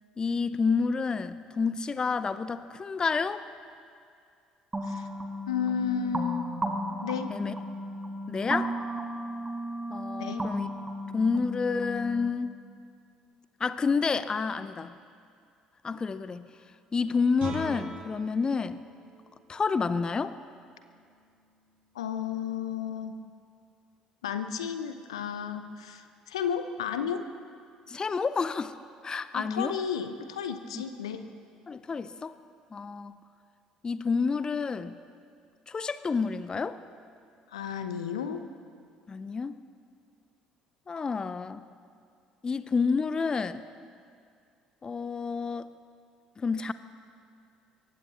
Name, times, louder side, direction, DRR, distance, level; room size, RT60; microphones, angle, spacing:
voice 1, 0.2-3.5 7.3-7.5 8.3-8.7 9.9-10.7 11.1-12.6 13.6-14.9 15.8-16.5 16.9-18.8 19.5-20.4 27.9-28.8 29.0-29.7 30.7-30.8 31.7-32.4 32.7-33.2 33.8-35.0 35.7-36.8 39.1-39.6 40.9-41.6 42.4-43.6 44.8-45.7 46.4-46.7, left 5 dB, 25° left, 14 dB, 0.5 m, -29 dB
sound 1, 4.7-12.3, right 1 dB, 15° right, 1.6 m, -35 dB
voice 2, 5.5-6.5 7.0-7.3 10.2-10.5 21.9-23.1 24.2-27.2 29.3-31.2 37.5-38.4, left 7 dB, 75° left, 9 dB, 0.8 m, -32 dB
Guitar, 17.3-22.9, right 1 dB, 50° right, 5.0 m, -45 dB
23.0 x 19.0 x 3.0 m, 2.3 s
figure-of-eight pair, 55°, 3 cm